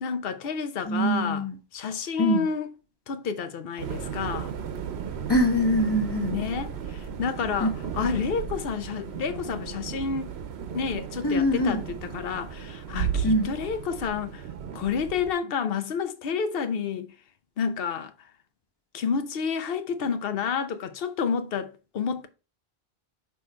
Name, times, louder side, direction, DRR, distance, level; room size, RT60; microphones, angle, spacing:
voice 1, 0.0-1.5 1.7-2.7 3.1-4.5 6.3-10.3 10.7-14.4 14.7-17.1 17.6-18.1 18.9-22.3, left 6 dB, 65° left, 0.9 m, -30 dB
voice 2, 0.8-1.5 2.2-2.5 5.3-6.4 7.6-7.7 11.2-11.8 13.2-13.5, equal, 25° left, 1.3 m, -23 dB
sound 1, 3.8-15.3, right 7 dB, 80° right, 1.0 m, -35 dB
6.1 x 3.2 x 5.0 m
omnidirectional pair, 1.1 m